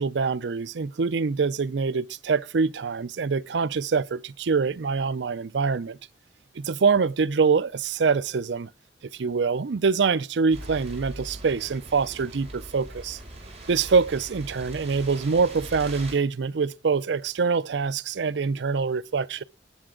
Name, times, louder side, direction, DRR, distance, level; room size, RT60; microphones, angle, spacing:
voice 1, 0.0-6.0 6.5-8.7 9.1-13.2 13.7-19.4, right 5 dB, 75° right, 0.5 m, -25 dB
sound 1, 10.5-16.1, right 1 dB, 35° right, 5.5 m, -41 dB
19.5 x 7.1 x 3.8 m
head